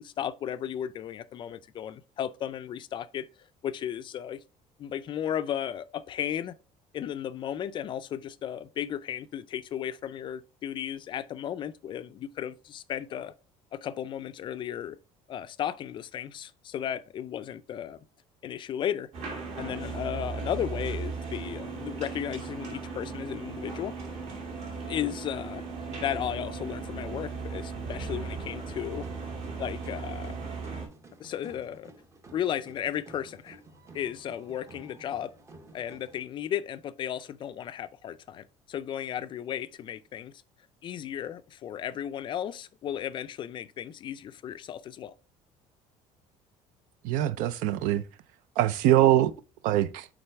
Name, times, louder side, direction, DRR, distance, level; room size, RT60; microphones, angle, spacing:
voice 1, 0.0-3.3 3.6-4.4 4.8-6.5 6.9-13.3 13.7-15.0 15.3-18.0 18.4-19.1 19.6-23.9 24.8-29.1 29.6-30.5 31.2-31.9 32.3-33.6 33.9-35.3 35.7-40.3 40.8-45.1, left 10 dB, 35° left, 0.4 m, -35 dB
sound 1, 19.1-30.9, right 4 dB, 55° right, 2.3 m, -37 dB
sound 2, 28.7-36.2, right 2 dB, 20° right, 0.7 m, -52 dB
voice 2, 47.0-48.0 48.6-49.3 49.6-50.1, right 13 dB, 75° right, 0.5 m, -23 dB
8.8 x 3.8 x 3.3 m
cardioid pair, 155°, 14 cm